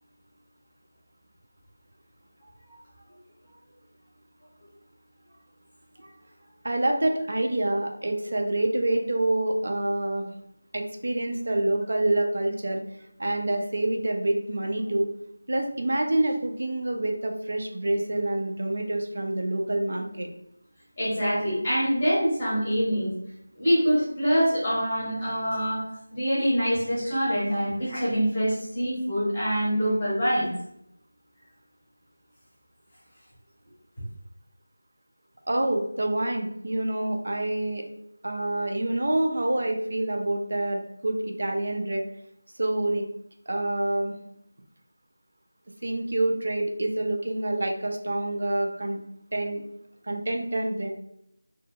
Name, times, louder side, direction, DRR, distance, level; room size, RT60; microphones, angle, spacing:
voice 1, 6.6-10.3 10.7-12.8 13.2-15.1 15.5-20.3 35.5-37.9 38.2-42.0 42.6-43.1 43.5-44.1 45.8-49.0 49.3-49.7 50.1-50.9, right 1 dB, 45° right, 3 dB, 0.4 m, -27 dB
voice 2, 21.0-23.1 23.6-25.8 26.1-30.5, equal, 15° left, -8 dB, 0.8 m, -25 dB
2.7 x 2.6 x 2.3 m, 0.75 s
figure-of-eight pair, 180°, 0 cm